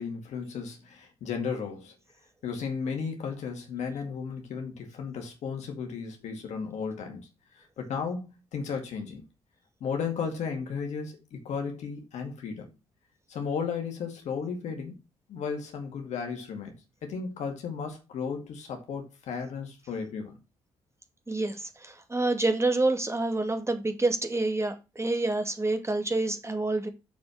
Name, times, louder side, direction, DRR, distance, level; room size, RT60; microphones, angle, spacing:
voice 1, 0.0-1.9 2.4-7.2 7.5-9.2 9.8-12.7 13.3-15.0 15.3-16.8 17.0-20.4, left 6 dB, 70° left, 2.3 m, -34 dB
voice 2, 21.3-26.9, right 2 dB, 20° right, 2.1 m, -28 dB
6.9 x 5.3 x 6.4 m
hypercardioid pair, 45°, 12 cm